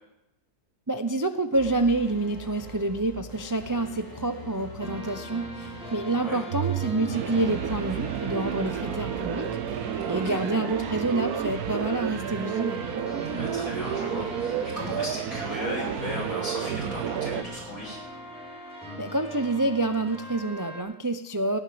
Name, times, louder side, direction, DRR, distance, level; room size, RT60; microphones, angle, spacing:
voice 1, 0.9-12.8 19.0-21.6, right 2 dB, 25° right, 8 dB, 0.4 m, -28 dB
sound 1, 1.5-18.6, right 1 dB, 10° left, 3.0 m, -45 dB
sound 2, 4.8-20.8, right 1 dB, 5° right, 4.8 m, -41 dB
sound 3, 6.5-17.4, right 9 dB, 70° right, 1.3 m, -31 dB
voice 2, 10.0-10.4 13.2-18.0, left 1 dB, 60° left, -3 dB, 7.7 m, -36 dB
17.5 x 10.0 x 7.7 m, 0.90 s
omnidirectional pair, 1.7 m